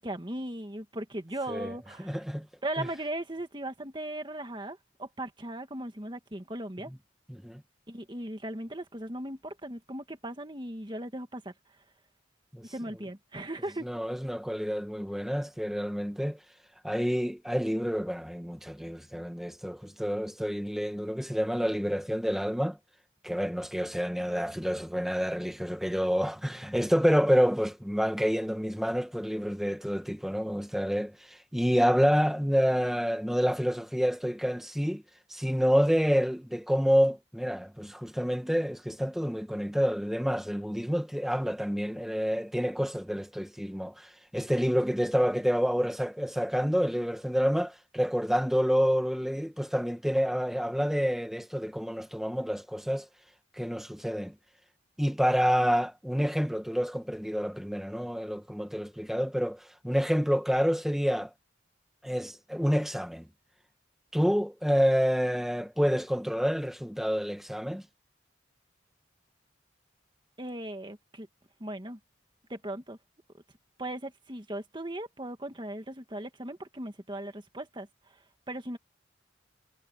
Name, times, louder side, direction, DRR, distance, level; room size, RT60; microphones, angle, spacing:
voice 1, 0.0-2.2 2.6-6.9 7.9-11.5 12.6-13.9 70.4-71.3 71.6-72.0 72.5-73.0 73.8-77.9 78.5-78.8, right 1 dB, 25° right, 2.0 m, -38 dB
voice 2, 2.0-2.5 2.8-2.9 6.9-7.0 7.3-7.6 12.5-12.6 13.8-16.4 16.8-22.8 23.2-35.0 35.3-53.1 53.6-54.3 55.0-61.3 62.0-63.3 64.1-67.8, equal, ahead, 1.8 m, -28 dB
head